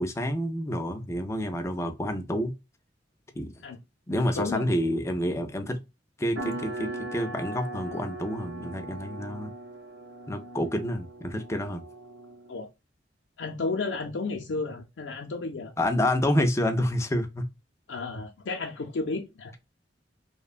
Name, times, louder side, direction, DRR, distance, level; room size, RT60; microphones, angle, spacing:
voice 1, 0.0-2.5 3.3-3.5 4.1-5.8 6.2-9.5 10.3-11.8 15.8-17.5, left 1 dB, 15° left, 0.4 m, -28 dB
voice 2, 4.2-4.6 12.5-12.7 13.4-15.7 17.9-19.5, left 3 dB, 75° left, 0.5 m, -32 dB
sound 1, 6.4-12.6, right 2 dB, 70° right, 0.7 m, -39 dB
2.8 x 2.1 x 2.3 m
head